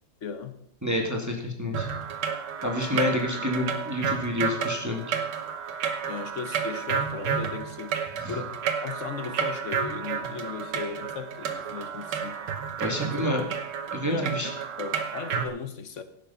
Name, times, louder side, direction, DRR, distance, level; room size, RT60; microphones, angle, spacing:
voice 1, 0.2-0.6 2.9-3.0 6.1-12.4 13.0-13.3 14.0-14.4 14.8-16.0, left 6 dB, 45° left, 1.3 m, -36 dB
voice 2, 0.8-1.9 2.6-5.1 8.2-8.4 12.8-13.4 13.9-14.5, left 1 dB, 10° right, 2.0 m, -28 dB
sound 1, 1.7-15.5, right 7 dB, 75° right, 1.8 m, -31 dB
17.0 x 7.5 x 5.6 m
omnidirectional pair, 1.9 m